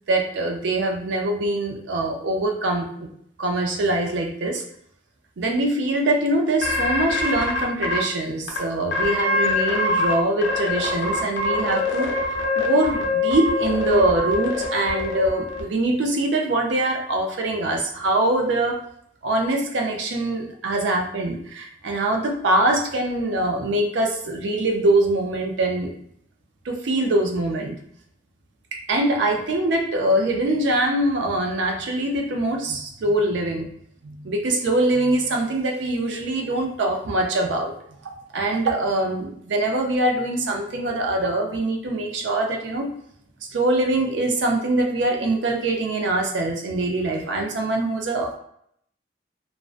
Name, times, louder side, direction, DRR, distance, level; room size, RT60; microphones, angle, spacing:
voice 1, 0.1-3.1 3.4-4.6 5.4-18.8 19.2-25.9 26.7-27.8 28.7-33.7 34.0-37.7 38.0-42.9 43.5-48.4, right 1 dB, 80° right, 2 dB, 0.4 m, -23 dB
sound 1, 6.6-8.0 8.5-8.6 8.9-10.1 10.4-15.6, left 2 dB, 80° left, 0.5 m, -24 dB
2.5 x 2.1 x 2.4 m, 0.69 s
head